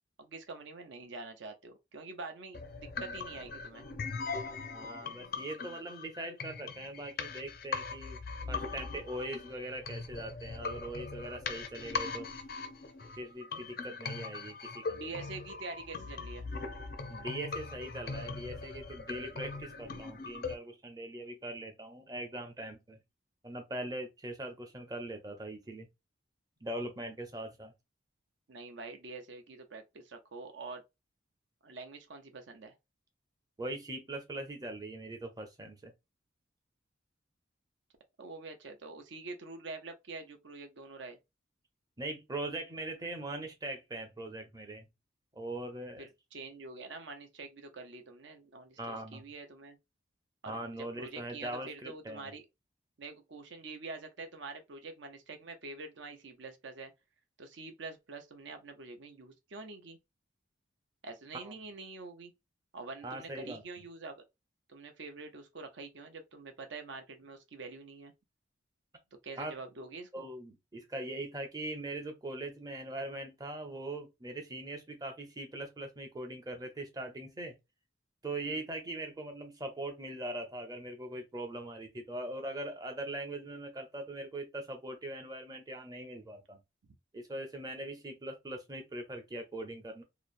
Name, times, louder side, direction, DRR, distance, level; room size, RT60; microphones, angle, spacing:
voice 1, 0.2-3.9 14.9-16.5 28.5-30.8 31.6-32.7 38.2-41.2 46.0-49.8 50.4-52.4 53.0-56.9 57.4-60.0 61.0-62.3 62.7-64.2 64.7-68.1 69.2-70.3 78.4-78.6 86.9-87.0, right 3 dB, 70° right, 0.6 m, -46 dB
sound 1, 2.5-20.5, left 4 dB, 50° left, 0.4 m, -40 dB
voice 2, 4.7-8.2 8.5-12.3 13.2-15.0 17.1-23.0 23.4-25.9 26.6-27.7 33.6-35.9 42.0-44.9 45.3-46.1 48.8-49.2 50.5-52.3 61.3-61.5 63.0-63.6 69.4-69.5 70.1-77.5 78.2-86.6 87.1-90.0, right 1 dB, 20° right, 0.6 m, -41 dB
2.8 x 2.1 x 2.5 m
head